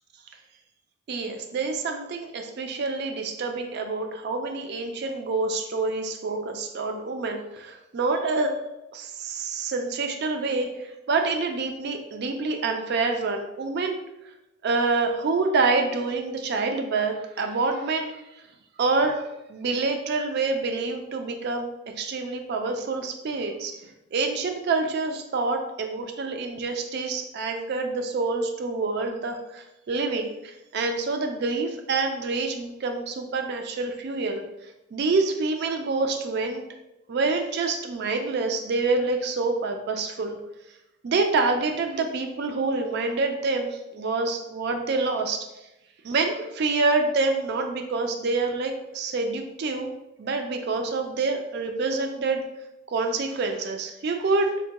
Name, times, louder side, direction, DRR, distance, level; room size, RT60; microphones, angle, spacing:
voice 1, 1.1-8.5 8.9-14.0 14.6-18.2 18.8-19.2 19.5-21.7 22.0-23.7 24.1-34.4 34.9-36.6 37.1-40.4 41.0-45.4 46.0-49.9 50.2-52.4 52.9-54.5, right 3 dB, 50° right, 5 dB, 0.3 m, -27 dB
4.4 x 2.1 x 2.9 m, 0.93 s
head